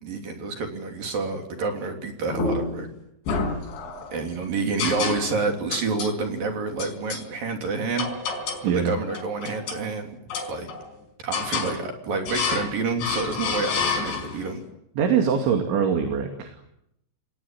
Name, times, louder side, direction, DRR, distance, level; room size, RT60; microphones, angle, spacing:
voice 1, 0.0-2.9 4.1-8.1 8.6-10.2 10.5-10.7 11.2-14.6, right 4 dB, 55° right, 4 dB, 4.6 m, -28 dB
sound 1, 2.3-2.9 3.3-4.1 4.8-5.4 5.7-6.2 6.8-7.3 8.0-8.7 9.1-9.9 10.3-10.9 11.3-11.8 12.3-12.7 13.0-14.5, left 5 dB, 75° left, 6.8 m, -29 dB
voice 2, 8.6-9.0 15.0-16.7, right 7 dB, 85° right, 4 dB, 4.9 m, -23 dB
28.5 x 21.5 x 9.3 m, 0.79 s
omnidirectional pair, 5.2 m